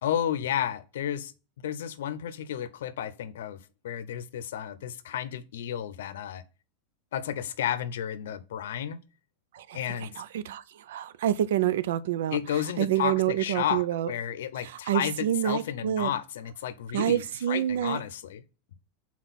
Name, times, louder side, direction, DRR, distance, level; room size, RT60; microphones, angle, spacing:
voice 1, 0.0-3.6 3.8-6.4 7.1-9.0 9.7-10.1 12.3-18.4, left 10 dB, 90° left, 0.6 m, -32 dB
voice 2, 9.5-14.1 14.6-16.1 16.9-18.0, right 11 dB, 80° right, 0.5 m, -28 dB
6.0 x 4.3 x 4.1 m
supercardioid pair, 155°, 0 cm